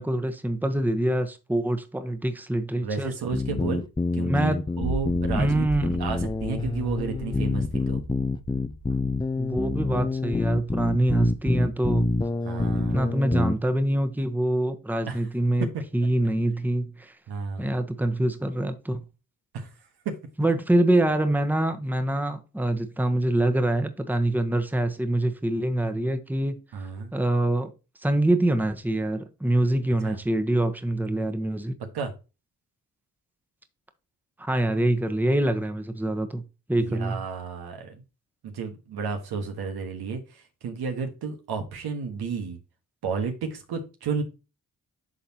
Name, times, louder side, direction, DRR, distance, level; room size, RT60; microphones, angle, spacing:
voice 1, 0.0-3.1 4.2-4.7 5.3-6.0 9.4-12.1 12.9-15.7 15.9-17.1 17.6-19.0 20.4-26.6 27.1-27.7 28.0-31.7 34.4-36.4 36.7-37.2, right 1 dB, 5° right, 1.0 m, -25 dB
voice 2, 2.8-3.8 4.1-4.5 4.8-8.0 12.4-13.2 15.1-15.2 15.6-15.7 17.3-17.7 19.5-19.7 20.0-20.2 26.7-27.1 30.0-30.2 31.9-32.1 36.8-38.0 38.4-42.6 43.0-44.2, right 5 dB, 85° right, 1.4 m, -32 dB
sound 1, 3.3-13.5, left 3 dB, 15° left, 0.5 m, -27 dB
sound 2, 4.8-10.9, right 3 dB, 65° right, 1.8 m, -36 dB
11.5 x 3.8 x 2.9 m
cardioid pair, 55°, 38 cm